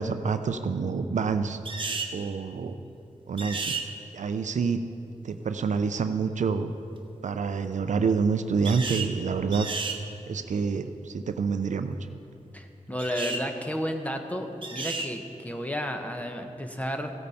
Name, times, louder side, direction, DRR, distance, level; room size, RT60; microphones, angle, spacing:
voice 1, 0.0-1.6 2.1-2.8 3.3-3.8 4.1-4.8 5.2-6.7 7.2-9.7 10.3-12.0, right 5 dB, 70° right, 9 dB, 0.5 m, -27 dB
sound 1, 1.6-2.1 3.4-3.9 8.6-9.1 9.5-10.0 13.0-13.4 14.6-15.1, right 4 dB, 40° right, 0.9 m, -32 dB
voice 2, 12.5-17.1, equal, 10° left, 5 dB, 0.9 m, -32 dB
15.5 x 8.5 x 4.2 m, 2.6 s
wide cardioid pair, 95°, 13 cm